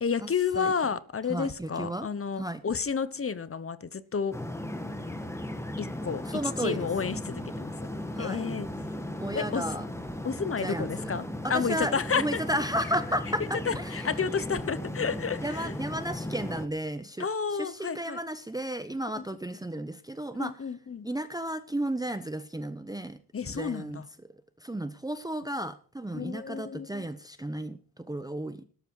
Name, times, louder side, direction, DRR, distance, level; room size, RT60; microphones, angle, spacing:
voice 1, 0.0-4.3 5.8-6.2 6.6-7.7 8.2-8.7 9.3-9.6 10.2-11.2 11.5-12.4 13.7-15.7 17.2-18.2 19.2-19.3 20.4-21.1 23.3-24.0 26.1-27.0, left 6 dB, 35° left, 1.0 m, -31 dB
voice 2, 1.3-2.1 2.4-2.6 6.3-6.9 8.2-8.4 9.2-9.8 10.6-11.1 11.4-14.1 15.4-20.5 21.0-23.2 23.5-24.0 24.6-28.6, right 1 dB, 10° right, 0.8 m, -33 dB
sound 1, 4.3-16.7, left 1 dB, 5° left, 1.5 m, -36 dB
17.5 x 12.5 x 4.8 m
wide cardioid pair, 150°, 39 cm